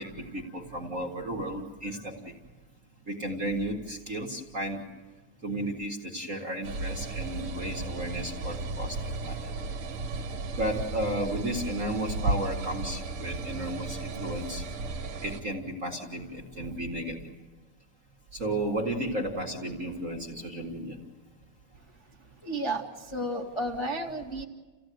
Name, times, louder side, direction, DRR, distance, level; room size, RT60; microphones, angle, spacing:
voice 1, 0.0-2.3 3.1-4.8 5.4-9.0 9.2-9.4 10.6-14.6 15.2-17.2 18.3-21.0, right 1 dB, 30° right, 0 dB, 1.8 m, -33 dB
sound 1, 6.6-15.4, right 3 dB, 55° right, 2.1 m, -34 dB
voice 2, 22.4-24.4, right 1 dB, 15° left, -1 dB, 1.2 m, -32 dB
29.5 x 16.0 x 9.3 m, 1.3 s
omnidirectional pair, 3.4 m